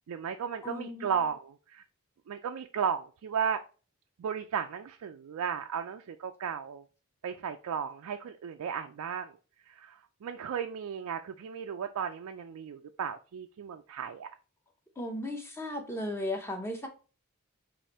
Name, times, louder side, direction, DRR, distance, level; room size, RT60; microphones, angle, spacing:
voice 1, 0.1-1.8 2.3-3.6 4.2-6.8 7.2-9.3 9.7-14.3, right 7 dB, 75° right, 0.3 m, -35 dB
voice 2, 0.6-1.1 15.0-16.9, left 1 dB, 10° left, 0.7 m, -35 dB
4.8 x 2.5 x 4.1 m
head